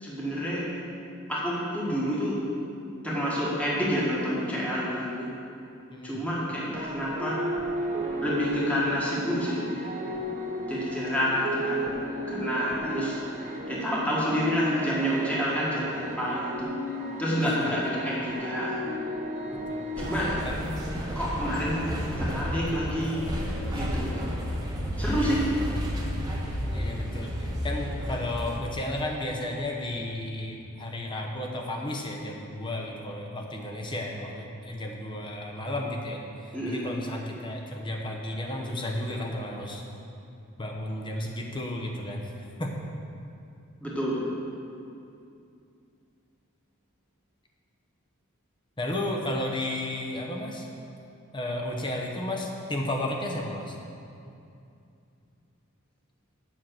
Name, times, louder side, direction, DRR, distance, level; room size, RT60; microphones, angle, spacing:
voice 1, 0.0-0.8 1.3-2.4 3.0-5.3 6.0-7.5 8.2-9.7 10.7-11.9 12.3-13.2 13.7-16.8 17.2-18.9 20.0-20.5 21.1-21.9 22.2-23.3 23.7-24.3 25.0-25.6 36.5-36.9 43.8-44.3, equal, 5° left, -6 dB, 1.6 m, -28 dB
voice 2, 5.9-6.2 17.4-17.7 19.7-19.9 20.4-20.6 25.1-25.5 26.7-39.8 40.6-42.3 42.6-42.7 48.8-50.7 51.3-53.8, left 1 dB, 20° left, 0 dB, 1.0 m, -33 dB
sound 1, 6.7-20.5, right 1 dB, 35° right, 0.9 m, -34 dB
sound 2, 20.0-28.6, equal, 20° right, 1.2 m, -31 dB
7.5 x 5.9 x 7.8 m, 2.6 s
head